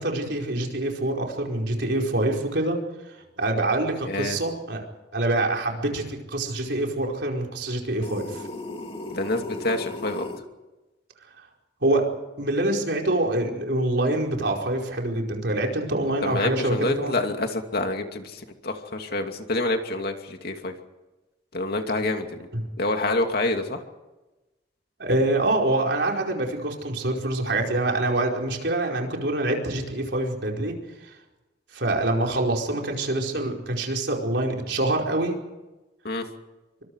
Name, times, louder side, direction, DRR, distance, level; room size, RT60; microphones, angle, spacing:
voice 1, 0.0-4.8 5.1-8.5 11.8-12.1 12.4-17.2 22.5-22.7 25.0-30.7 31.0-31.1 31.7-35.4, right 2 dB, 65° right, 1 dB, 4.9 m, -25 dB
voice 2, 4.1-4.4 9.1-10.3 16.2-20.7 21.5-22.5 22.8-23.8 36.0-36.2, left 2 dB, 55° left, 5 dB, 2.6 m, -27 dB
sound 1, 8.0-10.4, left 2 dB, 30° left, 2.3 m, -36 dB
26.5 x 24.5 x 4.9 m, 1.1 s
head